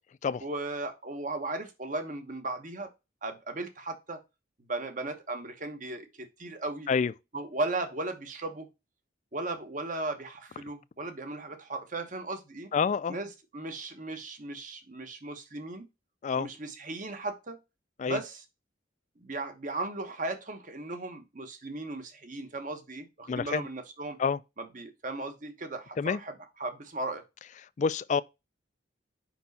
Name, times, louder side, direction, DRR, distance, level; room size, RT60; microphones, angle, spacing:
voice 1, 0.4-2.9 3.2-4.2 4.7-6.9 7.3-8.7 9.3-12.7 13.1-13.3 13.5-15.9 16.4-17.6 18.1-18.4 19.2-24.2 24.7-26.3 26.6-27.2, right 2 dB, 45° right, 1.1 m, -36 dB
voice 2, 12.7-13.2 16.2-16.5 18.0-18.2 23.3-23.7 24.2-24.4 26.0-26.2 27.8-28.2, left 5 dB, 40° left, 0.3 m, -27 dB
5.2 x 4.4 x 4.1 m
head